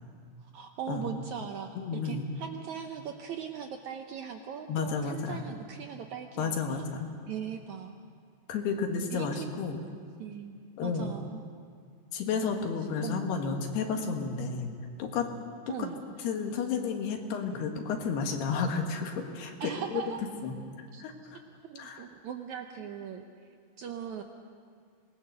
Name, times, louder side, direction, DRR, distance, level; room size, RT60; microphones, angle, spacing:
voice 1, 0.4-6.8 7.3-8.0 9.1-9.6 10.2-11.4 13.0-13.2 15.7-16.0 19.6-20.2 20.9-21.0 21.6-23.2 23.8-24.2, right 8 dB, 85° right, 5 dB, 1.6 m, -39 dB
voice 2, 1.8-2.3 4.7-5.5 6.4-7.1 8.5-9.8 10.8-11.2 12.1-14.7 15.0-15.3 15.7-15.8 16.2-20.0 20.4-21.4 21.8-22.1, left 5 dB, 80° left, 3 dB, 3.7 m, -32 dB
26.5 x 19.5 x 6.7 m, 2.2 s
omnidirectional pair, 4.6 m